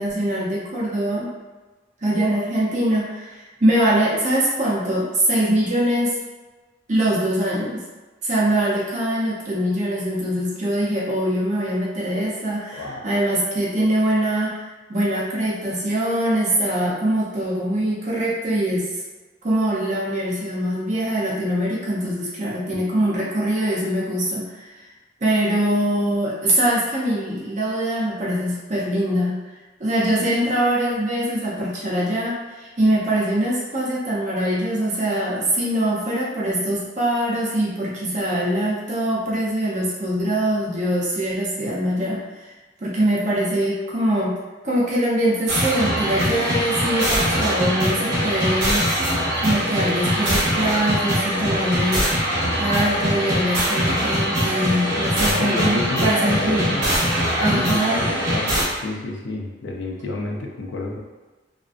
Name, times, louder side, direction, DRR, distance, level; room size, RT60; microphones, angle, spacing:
voice 1, 0.0-1.3 2.0-6.2 6.9-7.8 8.2-14.6 14.9-18.9 19.4-24.7 25.2-29.4 29.8-42.5 42.8-44.3 44.6-48.9 49.4-52.0 52.6-56.8 57.4-58.0, right 1 dB, 40° right, -6 dB, 0.6 m, -23 dB
voice 2, 12.7-13.0 55.2-56.9 57.4-61.0, left 2 dB, 80° left, 0 dB, 0.5 m, -29 dB
sound 1, 45.5-58.6, equal, 65° right, 0.9 m, -22 dB
2.5 x 2.1 x 2.4 m, 1.2 s
head